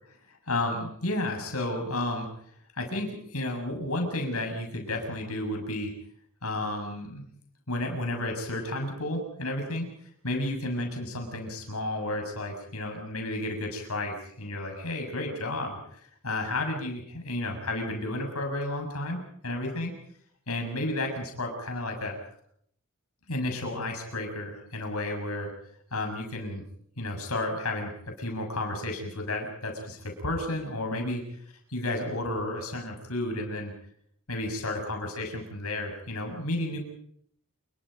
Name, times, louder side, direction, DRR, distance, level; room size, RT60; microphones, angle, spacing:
voice 1, 0.5-2.3 2.8-5.9 6.4-7.2 7.7-9.9 10.2-15.8 16.2-19.9 20.5-22.1 23.3-25.5 25.9-26.6 27.0-27.9 28.2-31.2 31.7-33.7 34.3-36.8, left 1 dB, 90° left, 3 dB, 7.0 m, -32 dB
29.0 x 22.0 x 5.2 m, 0.67 s
head